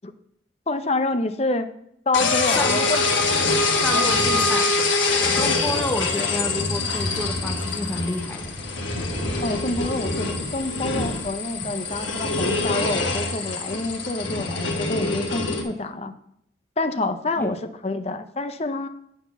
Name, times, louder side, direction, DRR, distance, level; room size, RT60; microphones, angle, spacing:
voice 1, 0.7-1.7 2.1-2.8 3.9-4.1 9.4-16.1 16.8-17.6 17.8-18.9, left 2 dB, 35° left, 9 dB, 0.5 m, -27 dB
sound 1, 2.1-15.6, left 3 dB, 80° left, 1.5 m, -24 dB
voice 2, 2.5-3.0 3.8-4.7 5.4-8.4 17.4-17.5, left 1 dB, 10° left, 3 dB, 1.0 m, -29 dB
Thunder / Rain, 8.4-14.7, equal, 40° right, 2.5 m, -39 dB
9.1 x 4.3 x 6.9 m, 0.73 s
head